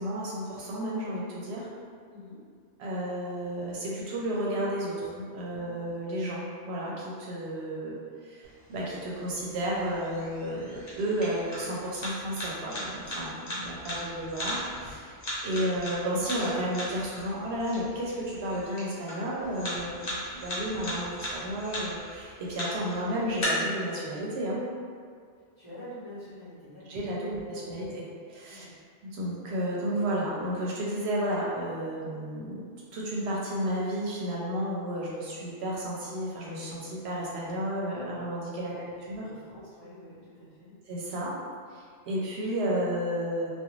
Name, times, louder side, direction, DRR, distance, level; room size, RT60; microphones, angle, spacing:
voice 1, 0.0-1.7 2.8-24.7 26.9-28.7 29.1-32.6 32.9-38.7 39.1-39.3 40.9-41.4 41.7-43.5, right 1 dB, 70° right, -5 dB, 0.8 m, -32 dB
voice 2, 5.5-5.9 13.1-13.3 19.8-20.0 25.6-27.9 28.5-28.7 38.7-40.7, left 1 dB, 35° left, -12 dB, 0.9 m, -47 dB
sound 1, 8.4-23.4, left 1 dB, 60° left, 1.0 m, -39 dB
2.4 x 2.2 x 3.0 m, 2.1 s
omnidirectional pair, 1.2 m